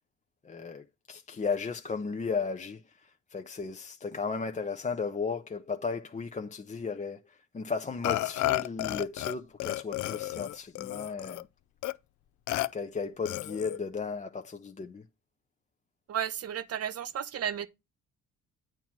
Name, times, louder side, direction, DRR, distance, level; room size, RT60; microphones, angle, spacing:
voice 1, 0.4-11.5 12.7-15.0, left 5 dB, 25° left, 0.6 m, -35 dB
Burping eructation, 8.0-9.4 9.6-11.4 11.8-11.9 12.5-12.7 13.3-13.8, left 16 dB, 75° left, 0.5 m, -32 dB
voice 2, 16.1-17.7, right 9 dB, 55° right, 0.8 m, -33 dB
8.9 x 3.0 x 5.8 m
cardioid pair, 90°, 30 cm